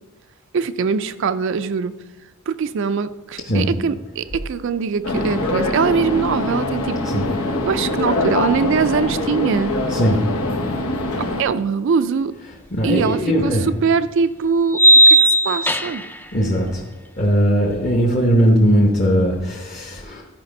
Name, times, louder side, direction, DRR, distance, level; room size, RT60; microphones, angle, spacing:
voice 1, 0.5-1.9 2.5-7.3 7.6-9.8 11.4-12.3 12.8-16.0, right 5 dB, 60° right, 12 dB, 0.4 m, -22 dB
sound 1, 5.0-11.4, left 2 dB, 90° left, 1.0 m, -23 dB
voice 2, 12.7-13.7 16.3-16.8 17.2-20.2, equal, 40° left, -1 dB, 1.0 m, -18 dB
sound 2, 13.1-13.2 14.7-16.2, right 1 dB, 10° left, 0.3 m, -13 dB
12.0 x 5.1 x 5.3 m, 1.2 s
head